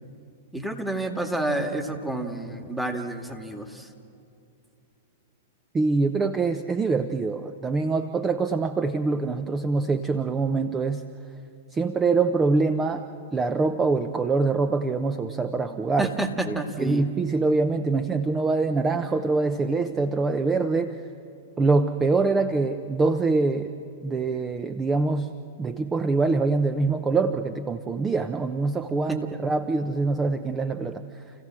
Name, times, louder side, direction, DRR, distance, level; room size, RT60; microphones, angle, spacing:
voice 1, 0.5-3.9 16.0-17.1 29.1-29.4, right 2 dB, ahead, 4 dB, 2.0 m, -29 dB
voice 2, 5.7-11.0 11.7-13.0 13.3-16.1 16.5-21.0 21.6-23.7 24.0-25.3 25.6-31.0, right 3 dB, 15° right, 10 dB, 0.9 m, -24 dB
30.0 x 15.5 x 7.6 m, 2.7 s
hypercardioid pair, 110°, 0 cm